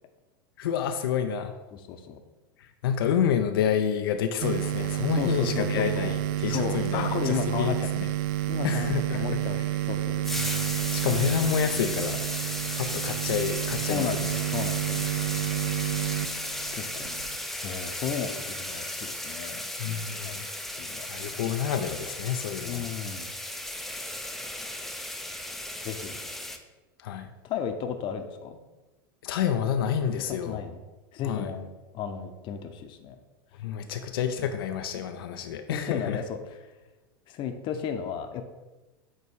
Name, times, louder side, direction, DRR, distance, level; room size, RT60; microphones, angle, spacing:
voice 1, 0.6-1.6 2.6-7.8 8.6-9.3 10.9-14.1 19.8-20.5 21.1-22.9 27.0-27.3 29.2-30.6 31.2-31.5 33.6-36.2, left 8 dB, 80° left, 6 dB, 0.5 m, -29 dB
voice 2, 1.7-2.2 5.2-6.2 6.4-7.9 8.5-10.3 13.9-15.1 16.7-17.2 17.5-19.6 20.2-20.5 20.8-21.1 22.6-23.3 25.8-26.2 27.4-28.6 30.3-30.8 31.1-33.1 34.4-34.5 35.7-36.7 37.3-38.4, left 8 dB, 45° left, 7 dB, 0.8 m, -34 dB
sound 1, 4.4-17.4, right 13 dB, 60° right, 0.4 m, -30 dB
sound 2, 10.2-26.6, left 1 dB, ahead, 0.6 m, -35 dB
8.4 x 3.0 x 4.6 m, 1.1 s
supercardioid pair, 115°, 12 cm